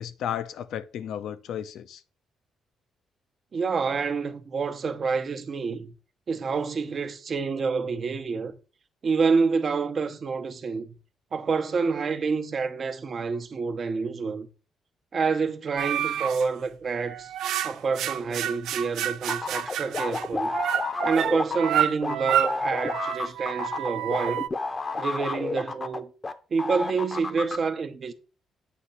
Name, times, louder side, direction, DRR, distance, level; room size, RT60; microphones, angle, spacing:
voice 1, 0.0-2.0, left 9 dB, 75° left, 0.5 m, -33 dB
voice 2, 3.5-5.9 6.3-8.5 9.0-10.9 11.3-14.5 15.1-17.3 17.6-20.5 21.0-24.5 25.0-26.1 26.5-28.1, right 5 dB, 45° right, 0.8 m, -28 dB
sound 1, 15.8-16.4 17.0-24.5, right 11 dB, 80° right, 0.4 m, -29 dB
sound 2, 19.3-26.3 26.6-27.6, left 3 dB, 30° left, 0.7 m, -30 dB
8.1 x 2.9 x 5.5 m
cardioid pair, 90°, 0 cm